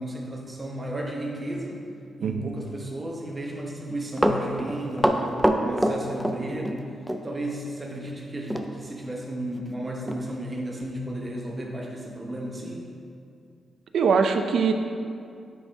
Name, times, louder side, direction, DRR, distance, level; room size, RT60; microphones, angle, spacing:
voice 1, 0.0-1.8 2.2-6.8 7.2-12.9, right 1 dB, 25° right, -1 dB, 1.0 m, -33 dB
Run, 3.9-6.8 7.1-7.2 8.5-8.7 9.0-9.1 9.7-9.8 10.1-10.3 10.8-10.9, equal, 5° right, 0.4 m, -24 dB
voice 2, 13.9-14.7, right 5 dB, 75° right, 6 dB, 0.5 m, -22 dB
9.3 x 4.2 x 3.5 m, 2.4 s
cardioid pair, 105°, 0 cm